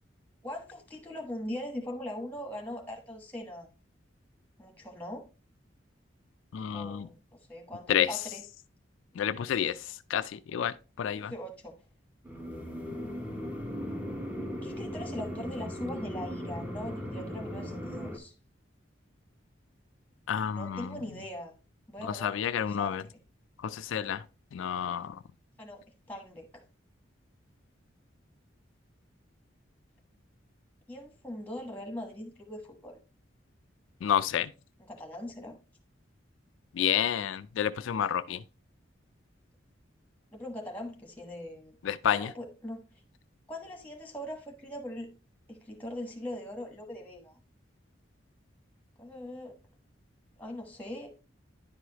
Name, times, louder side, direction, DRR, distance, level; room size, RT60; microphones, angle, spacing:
voice 1, 0.4-3.7 4.6-5.2 6.6-7.1 7.5-8.4 11.1-11.8 14.6-18.3 20.4-21.5 21.9-23.0 25.6-25.8 26.1-26.5 30.9-33.0 34.8-35.6 40.3-41.7 42.1-42.9 43.5-45.1 45.5-47.4 49.0-49.5 50.4-51.1, left 1 dB, 10° left, 1.2 m, -41 dB
voice 2, 6.5-7.1 7.9-8.1 9.2-11.3 20.3-21.0 22.0-23.0 23.6-24.2 24.5-25.2 34.0-34.5 36.7-38.4 41.8-42.3, left 9 dB, 85° left, 0.3 m, -30 dB
sound 1, 12.3-18.2, equal, 10° right, 0.8 m, -37 dB
10.0 x 4.8 x 2.9 m
head